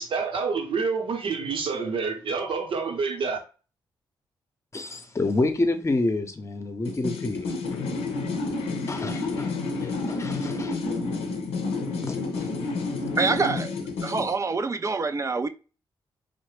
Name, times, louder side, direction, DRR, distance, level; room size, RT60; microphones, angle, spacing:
voice 1, 0.0-3.4, right 5 dB, 65° right, 0.8 m, -28 dB
voice 2, 4.7-7.6 8.9-10.8 12.0-12.5, left 2 dB, 30° left, 0.7 m, -28 dB
sound 1, 6.8-14.3, left 3 dB, 85° left, 0.6 m, -30 dB
voice 3, 13.2-13.7 14.0-15.5, right 4 dB, 30° right, 0.4 m, -26 dB
2.8 x 2.1 x 3.2 m
supercardioid pair, 45°, 10 cm